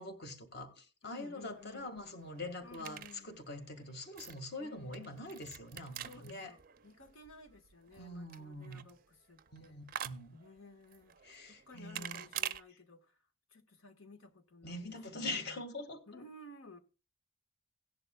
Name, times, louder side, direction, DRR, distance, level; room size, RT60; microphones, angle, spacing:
voice 1, 0.0-6.5 8.0-8.8 9.5-10.3 11.2-12.2 14.6-16.2, left 2 dB, 50° left, 1.8 m, -44 dB
voice 2, 1.0-1.9 2.6-3.4 4.6-5.1 5.9-9.8 10.3-11.2 11.5-15.6 16.1-16.8, left 2 dB, 85° left, 1.5 m, -55 dB
sound 1, 1.4-12.6, right 10 dB, 45° right, 0.4 m, -47 dB
17.0 x 10.5 x 2.3 m
head